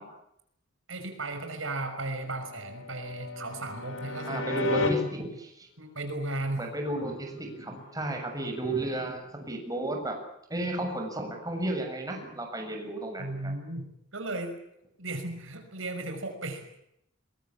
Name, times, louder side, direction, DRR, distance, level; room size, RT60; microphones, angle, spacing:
voice 1, 0.9-4.4 5.8-6.7 13.2-13.9 14.1-14.6 15.0-16.7, right 2 dB, 75° right, 6 dB, 6.0 m, -35 dB
sound 1, 2.1-4.9 7.8-9.1, left 3 dB, 80° left, 5.5 m, -35 dB
voice 2, 4.3-5.7 6.6-10.2 10.5-13.5, right 2 dB, 20° right, 3 dB, 6.8 m, -33 dB
23.0 x 23.0 x 8.6 m, 0.78 s
head